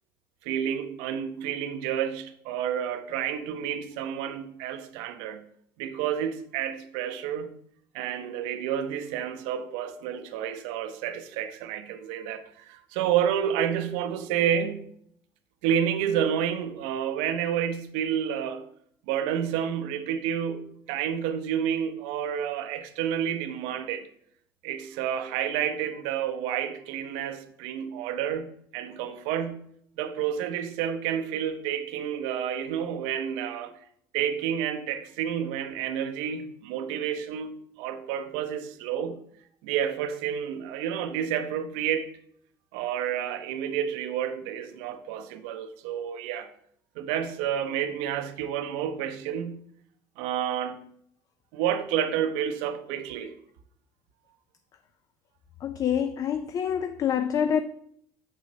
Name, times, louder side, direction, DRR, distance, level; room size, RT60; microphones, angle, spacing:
voice 1, 0.4-5.4 5.8-7.6 7.9-14.8 15.6-18.7 19.1-24.1 24.6-29.7 30.0-33.7 34.1-39.2 39.6-42.1 42.7-46.5 47.0-49.6 50.2-50.9 51.5-53.3, right 9 dB, 80° right, 0.6 m, -30 dB
voice 2, 55.6-57.6, left 8 dB, 40° left, 0.4 m, -26 dB
6.9 x 6.1 x 2.7 m
supercardioid pair, 85°, 9 cm